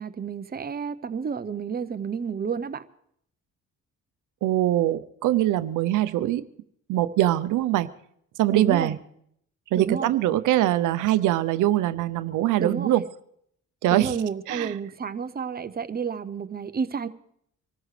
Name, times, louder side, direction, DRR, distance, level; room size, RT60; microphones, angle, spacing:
voice 1, 0.0-2.8 8.5-9.0 9.8-10.1 12.6-13.0 13.9-17.1, right 6 dB, 30° right, 0.7 m, -30 dB
voice 2, 4.4-6.4 6.9-7.9 8.4-9.0 9.7-13.0 13.8-14.1 14.5-14.7, right 14 dB, 85° right, 0.7 m, -23 dB
25.5 x 14.0 x 3.3 m
cardioid pair, 90°, 30 cm